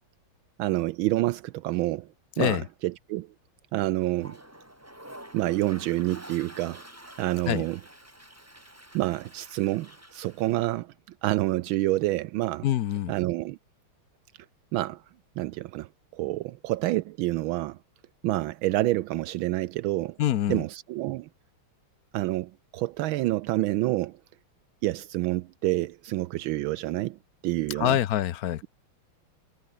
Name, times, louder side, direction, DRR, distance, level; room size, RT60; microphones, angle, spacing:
voice 1, 0.6-2.1 2.4-3.3 3.7-4.4 5.3-6.8 7.2-7.8 8.9-10.9 11.2-12.7 13.1-13.6 14.7-15.0 15.4-17.8 18.2-20.2 20.5-21.3 22.1-24.2 24.8-27.2 27.4-28.0, right 17 dB, 80° right, 1.3 m, -28 dB
Toilet flush, 4.0-10.8, right 1 dB, 5° right, 3.2 m, -49 dB
voice 2, 12.6-13.1 20.2-20.6 27.8-28.7, left 12 dB, 60° left, 1.0 m, -25 dB
omnidirectional pair, 2.3 m